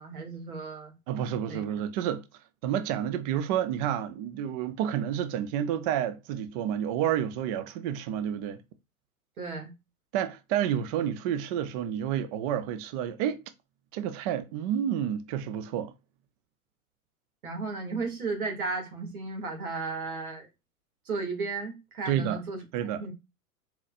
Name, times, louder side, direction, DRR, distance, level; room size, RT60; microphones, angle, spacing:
voice 1, 0.0-0.9 1.5-1.6 9.4-9.7 17.4-20.5 21.1-22.6 22.9-23.1, right 4 dB, 80° right, 2.1 m, -34 dB
voice 2, 1.1-2.2 2.6-8.6 10.1-13.4 13.9-15.9 22.1-22.4 22.7-23.1, right 10 dB, 30° right, 0.3 m, -30 dB
4.2 x 3.9 x 2.5 m
hypercardioid pair, 110°, 43 cm